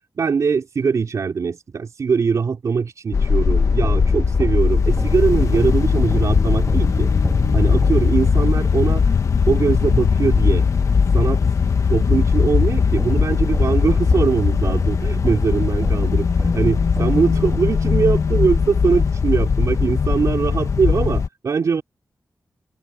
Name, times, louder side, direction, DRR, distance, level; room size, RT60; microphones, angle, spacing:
voice 1, 0.2-7.1 7.5-9.1 9.5-10.7 11.1-11.4 11.9-16.3 16.5-21.8, right 5 dB, 65° right, 3.9 m, -21 dB
sound 1, 3.1-21.3, left 5 dB, 65° left, 1.5 m, -19 dB
sound 2, 3.8-8.9 13.0-18.2, equal, ahead, 3.8 m, -29 dB
open air
wide cardioid pair, 85°, 6 cm